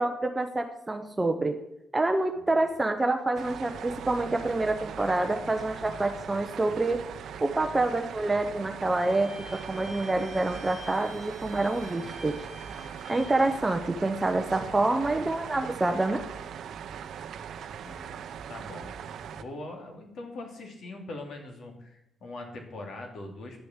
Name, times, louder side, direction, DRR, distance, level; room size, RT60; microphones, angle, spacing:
voice 1, 0.0-1.6 1.9-7.0 7.4-9.3 9.7-12.3 13.1-16.2, right 2 dB, 15° right, 6 dB, 0.7 m, -27 dB
sound 1, 3.3-19.4, right 8 dB, 65° right, 0.6 m, -40 dB
Bowed string instrument, 9.0-13.6, left 1 dB, 30° left, 3.4 m, -48 dB
voice 2, 17.8-18.9 19.3-23.7, left 2 dB, 60° left, 2 dB, 2.5 m, -42 dB
10.0 x 6.7 x 7.2 m, 0.83 s
cardioid pair, 140°, 0 cm